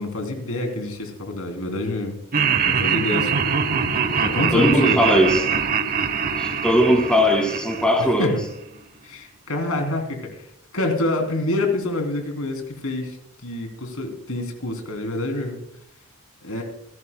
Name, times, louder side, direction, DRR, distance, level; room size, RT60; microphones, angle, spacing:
voice 1, 0.0-2.1 2.6-3.4 4.2-5.0 8.2-8.3 9.0-10.4 10.7-13.2 13.4-15.6 16.4-16.6, left 2 dB, 80° left, 3.1 m, -26 dB
Laughter, 2.3-8.5, right 6 dB, 45° right, 1.0 m, -23 dB
voice 2, 4.5-5.5 6.4-8.3, equal, 5° left, 1.9 m, -19 dB
27.5 x 11.0 x 2.2 m
head